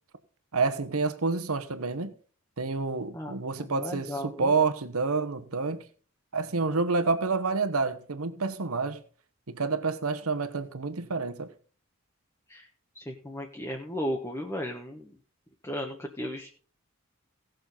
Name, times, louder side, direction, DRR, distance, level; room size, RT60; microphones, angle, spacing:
voice 1, 0.5-2.1 2.6-5.8 6.3-9.0 9.5-11.5, right 4 dB, 85° right, 1.1 m, -28 dB
voice 2, 3.6-4.5 12.5-12.7 12.9-15.1 15.6-16.5, equal, 15° left, 1.1 m, -35 dB
17.5 x 6.6 x 4.1 m
head